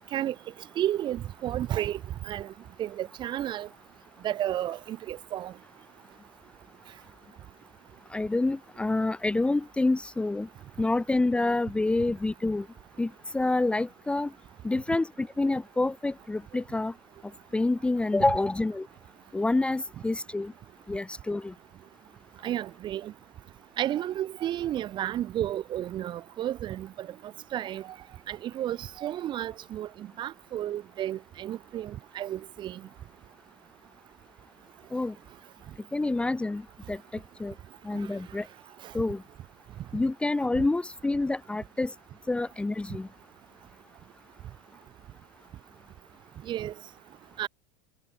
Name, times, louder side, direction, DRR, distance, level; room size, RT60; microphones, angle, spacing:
voice 1, 0.8-2.0 2.3-2.5 2.8-3.7 4.2-5.5 22.4-23.1 23.8-27.1 27.5-27.8 28.3-32.8 46.5-46.7 47.4-47.5, right 12 dB, 40° right, 1.9 m, -32 dB
voice 2, 8.1-10.5 10.8-12.7 13.0-14.3 14.6-16.9 17.5-18.9 19.3-20.5 20.9-21.5 34.9-35.1 35.9-36.6 36.9-37.0 37.4-37.5 37.8-38.5 38.9-39.2 39.9-41.9 42.3-43.1, left 2 dB, 10° left, 1.1 m, -27 dB
hypercardioid pair, 105°, 12 cm